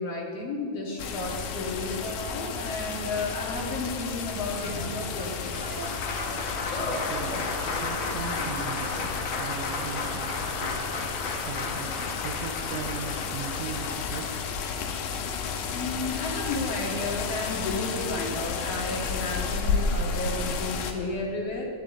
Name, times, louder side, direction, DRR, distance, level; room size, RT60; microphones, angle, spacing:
voice 1, 0.0-5.8 15.7-21.7, left 2 dB, 45° left, -2 dB, 2.5 m, -33 dB
sound 1, 1.0-20.9, left 5 dB, 70° left, 2.3 m, -32 dB
Applause, 4.6-14.9 16.3-16.4 16.6-17.7, left 3 dB, 90° left, 1.0 m, -35 dB
sound 2, 4.6-11.4 11.7-11.8 12.4-12.5 12.8-12.9, right 1 dB, 25° right, 2.0 m, -42 dB
voice 2, 6.8-14.6, right 6 dB, 75° right, 2 dB, 1.8 m, -39 dB
23.0 x 11.5 x 3.8 m, 2.5 s
omnidirectional pair, 4.6 m